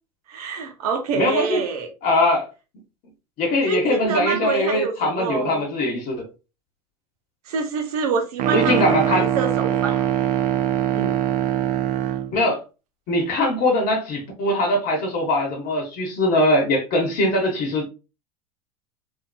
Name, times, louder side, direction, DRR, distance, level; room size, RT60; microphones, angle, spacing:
voice 1, 0.3-1.9 3.7-5.6 7.4-10.0 10.9-11.2, right 5 dB, 75° right, 0.8 m, -26 dB
voice 2, 1.1-1.6 2.0-2.5 3.4-6.3 8.5-9.3 12.3-12.6 13.1-17.9, left 1 dB, 50° left, 0.9 m, -21 dB
sound 1, 8.4-12.3, right 11 dB, 40° right, 0.5 m, -22 dB
2.7 x 2.6 x 2.2 m
hypercardioid pair, 90°, 20 cm